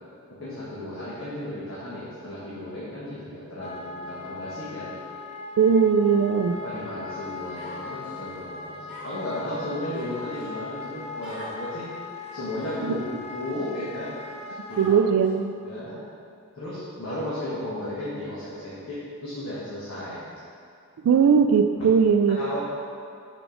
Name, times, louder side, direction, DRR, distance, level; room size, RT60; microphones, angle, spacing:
voice 1, 0.3-5.0 6.5-11.9 12.3-13.0 13.3-14.1 14.7-14.9 15.6-16.0 16.5-20.2 22.3-22.8, left 1 dB, 60° left, -10 dB, 1.5 m, -34 dB
Wind instrument woodwind instrument, 3.6-14.9, left 4 dB, 30° left, 0.4 m, -39 dB
voice 2, 5.6-6.6 12.8-13.0 14.8-15.5 21.0-22.4, right 6 dB, 80° right, 6 dB, 0.3 m, -19 dB
Human voice, 7.6-8.2 8.9-9.3 9.9-10.5 11.2-11.6 12.2-12.6 13.3-13.4 14.7-15.3, equal, 10° right, 1.4 m, -43 dB
6.1 x 4.5 x 5.0 m, 2.4 s
head